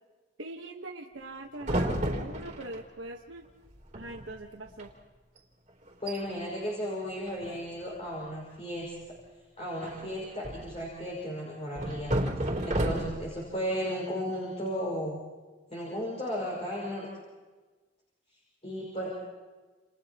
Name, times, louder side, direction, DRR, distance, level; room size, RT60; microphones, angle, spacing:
voice 1, 0.4-3.4 3.9-4.9, right 2 dB, 85° right, 1 dB, 1.4 m, -41 dB
sound 1, 1.6-2.8 3.7-3.8 3.9-4.3 4.7-4.8 5.4-5.5 5.9-6.2 7.3-7.8 9.8-10.8 11.8-13.4, right 1 dB, 40° right, 3.4 m, -32 dB
voice 2, 6.0-8.9 9.6-15.2 15.7-17.1 18.6-19.1, equal, 35° left, -5 dB, 5.4 m, -35 dB
30.0 x 29.5 x 3.0 m, 1.3 s
head